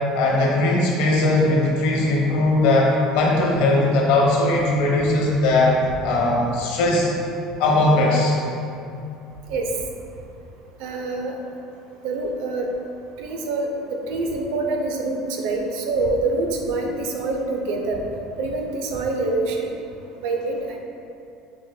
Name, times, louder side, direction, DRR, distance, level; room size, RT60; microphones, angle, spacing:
voice 1, 0.1-5.7 6.0-7.1 7.6-8.4, left 2 dB, 75° left, -2 dB, 0.8 m, -19 dB
voice 2, 10.8-11.3 12.0-12.7 13.2-13.7 14.1-18.0 18.4-19.7 20.2-20.8, right 3 dB, 75° right, 2 dB, 0.5 m, -25 dB
5.5 x 3.0 x 2.2 m, 2.6 s
supercardioid pair, 100°, 0 cm